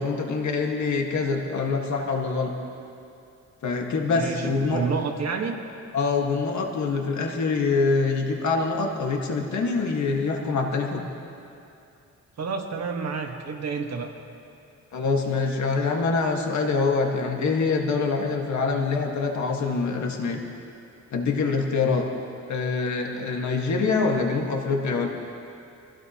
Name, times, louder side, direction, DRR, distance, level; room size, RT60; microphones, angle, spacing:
voice 1, 0.0-2.5 3.6-4.9 5.9-11.0 14.9-20.4 21.1-22.1 22.5-25.1, left 4 dB, 75° left, 1 dB, 1.7 m, -25 dB
voice 2, 4.1-5.5 12.4-14.1, right 5 dB, 60° right, 3 dB, 1.5 m, -29 dB
24.0 x 16.0 x 3.0 m, 2.6 s
wide cardioid pair, 120°, 29 cm